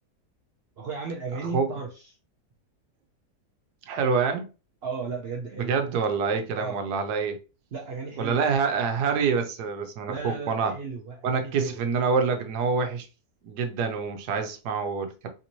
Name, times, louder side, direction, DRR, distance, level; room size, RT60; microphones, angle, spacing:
voice 1, 0.8-1.9 4.8-5.8 6.5-6.8 7.7-8.4 10.1-11.9, right 4 dB, 60° right, 0.7 m, -35 dB
voice 2, 3.9-4.5 5.5-7.4 8.2-10.7 11.2-13.1 13.4-15.3, right 5 dB, 85° right, 1.3 m, -26 dB
3.4 x 2.7 x 2.9 m
omnidirectional pair, 1.7 m